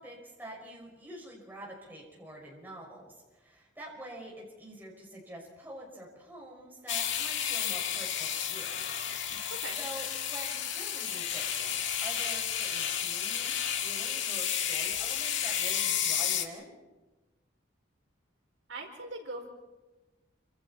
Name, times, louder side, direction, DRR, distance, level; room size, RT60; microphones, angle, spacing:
voice 1, 0.0-8.8 9.8-16.7, right 1 dB, 10° right, -3 dB, 6.1 m, -46 dB
sound 1, 6.9-16.4, left 9 dB, 70° left, 1.9 m, -32 dB
voice 2, 18.7-19.5, right 2 dB, 75° right, 2 dB, 4.3 m, -40 dB
28.0 x 26.5 x 4.4 m, 1.1 s
head